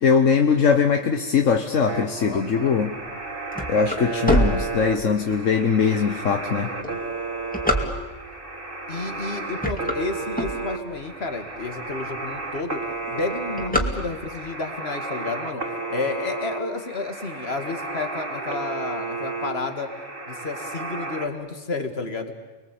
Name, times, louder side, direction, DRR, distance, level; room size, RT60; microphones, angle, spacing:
voice 1, 0.0-2.9 3.7-6.7, left 6 dB, 75° left, 5 dB, 1.5 m, -21 dB
sound 1, 1.9-21.3, right 3 dB, 45° right, 2.5 m, -33 dB
voice 2, 2.2-2.8 6.8-7.0 8.9-15.6 15.9-19.9 20.3-22.3, left 3 dB, 55° left, 6 dB, 2.5 m, -31 dB
sound 2, 3.1-5.3 5.9-6.0 6.7-8.4 9.0-9.2 9.5-11.1 11.6-11.7 11.9-12.0 12.3-12.6 12.9-14.5, equal, 5° left, 2.3 m, -25 dB
30.0 x 21.5 x 8.5 m, 1.2 s
omnidirectional pair, 1.3 m